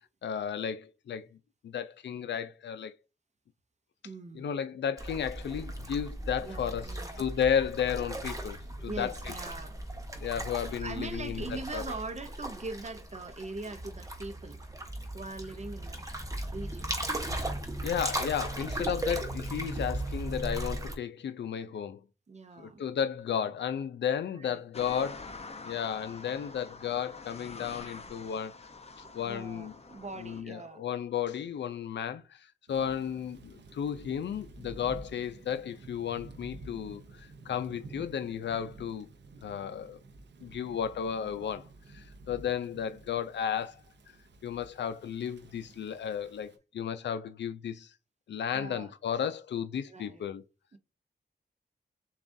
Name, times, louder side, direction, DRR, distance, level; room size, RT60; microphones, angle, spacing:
voice 1, 0.2-1.3 1.6-2.9 4.3-6.9 7.2-9.1 10.2-11.8 17.2-17.3 17.8-22.0 22.6-25.3 25.6-28.5 29.1-29.7 30.2-39.1 39.4-40.0 40.4-41.6 41.9-43.8 44.4-47.9 48.3-50.4, left 8 dB, 90° left, 0.4 m, -33 dB
voice 2, 4.0-4.5 6.4-7.3 8.9-9.8 10.8-14.6 15.1-16.9 22.3-23.0 24.3-24.6 29.0-30.8 48.5-48.9 49.9-50.2 50.7-50.8, right 3 dB, 40° right, 0.6 m, -42 dB
sound 1, 5.0-20.9, right 1 dB, 20° right, 1.0 m, -37 dB
sound 2, 24.7-30.4, left 3 dB, 35° left, 0.7 m, -46 dB
Thunder / Rain, 32.7-46.6, right 2 dB, 85° right, 0.7 m, -51 dB
7.0 x 2.4 x 2.6 m
wide cardioid pair, 100°, 18 cm